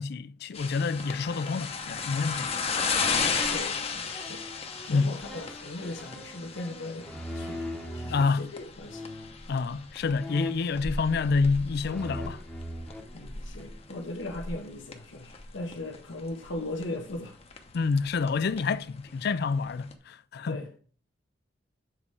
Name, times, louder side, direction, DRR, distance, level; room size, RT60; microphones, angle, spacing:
voice 1, 0.0-2.5 4.9-5.1 8.1-8.5 9.5-12.4 17.7-20.6, left 4 dB, 55° left, 0.4 m, -28 dB
sound 1, 0.5-19.9, left 5 dB, 30° left, 0.8 m, -35 dB
sound 2, 3.0-8.2 8.9-9.4 10.1-11.5 11.8-13.8, equal, 5° left, 0.9 m, -41 dB
voice 2, 3.1-4.5 4.8-9.0 10.3-10.4 13.1-17.4 20.4-20.7, left 2 dB, 80° left, 1.0 m, -39 dB
7.2 x 4.2 x 4.7 m
head